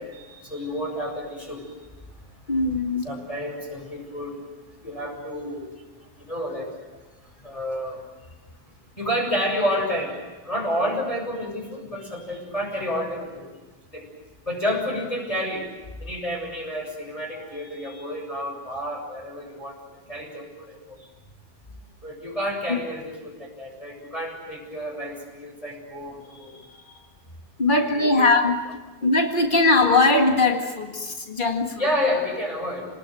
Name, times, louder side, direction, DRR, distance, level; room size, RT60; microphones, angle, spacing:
voice 1, 0.0-1.6 3.0-4.4 4.8-5.7 6.3-6.7 7.4-8.0 9.0-10.2 10.4-13.4 13.9-14.0 14.5-15.6 16.0-19.7 20.1-21.0 22.0-26.6 27.8-28.3 31.8-32.8, equal, 10° left, 1 dB, 7.0 m, -30 dB
voice 2, 2.5-3.1 22.7-22.8 27.6-28.6 29.0-31.8, left 3 dB, 80° left, 4 dB, 0.4 m, -20 dB
28.0 x 20.0 x 9.1 m, 1.2 s
omnidirectional pair, 4.1 m